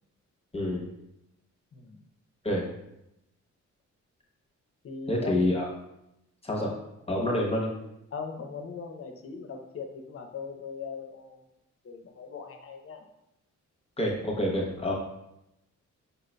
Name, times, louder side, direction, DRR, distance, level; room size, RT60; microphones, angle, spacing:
voice 1, 0.5-0.8 2.4-2.6 5.1-5.6 6.4-6.7 7.1-7.7 14.0-14.9, left 1 dB, 20° left, -1 dB, 0.8 m, -27 dB
voice 2, 4.8-5.5 6.5-6.7 8.1-11.4 11.8-13.1, left 5 dB, 45° left, 5 dB, 0.6 m, -40 dB
5.5 x 3.8 x 2.2 m, 0.85 s
wide cardioid pair, 125°, 30 cm